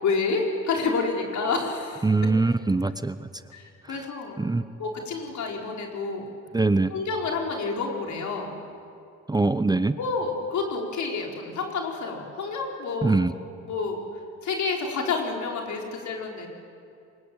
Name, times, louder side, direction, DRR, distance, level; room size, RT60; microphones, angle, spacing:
voice 1, 0.0-2.1 3.5-4.5 4.8-6.3 6.9-8.5 10.0-13.2 13.7-14.0 14.4-16.5, left 4 dB, 70° left, 1 dB, 4.9 m, -29 dB
voice 2, 2.0-3.3 3.9-4.0 4.4-4.7 6.5-6.9 9.3-10.0 13.0-13.3, right 3 dB, 15° right, 12 dB, 0.7 m, -23 dB
25.0 x 22.0 x 8.9 m, 2.5 s
cardioid pair, 90°, 30 cm